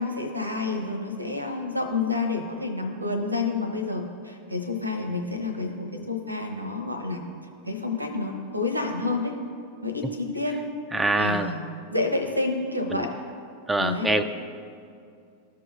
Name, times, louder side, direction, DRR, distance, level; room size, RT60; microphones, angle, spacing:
voice 1, 0.0-7.2 7.6-9.3 9.8-10.6 11.1-11.6 11.9-13.1 13.8-14.1, left 3 dB, 85° right, 5 dB, 0.9 m, -29 dB
voice 2, 10.9-11.5 12.9-13.0 13.7-14.2, right 2 dB, 10° right, 9 dB, 0.4 m, -24 dB
14.0 x 4.8 x 2.6 m, 2.4 s
figure-of-eight pair, 90°, 0 cm